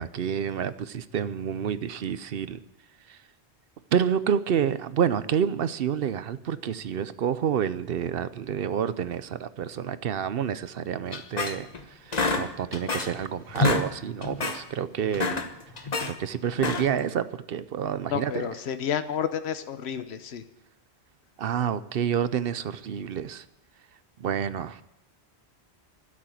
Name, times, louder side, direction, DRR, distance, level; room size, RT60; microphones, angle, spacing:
voice 1, 0.0-2.6 3.1-3.2 3.9-15.3 15.8-18.5 21.4-23.4 24.2-24.8, right 8 dB, 65° right, 14 dB, 0.8 m, -29 dB
sound 1, 11.1-11.8 12.1-13.2 13.5-13.9 14.2-14.6 15.0-16.1 16.5-17.0, left 3 dB, 40° left, 1.1 m, -28 dB
voice 2, 18.1-20.4, left 8 dB, 75° left, 10 dB, 1.1 m, -30 dB
12.5 x 8.7 x 9.1 m, 0.87 s
omnidirectional pair, 1.1 m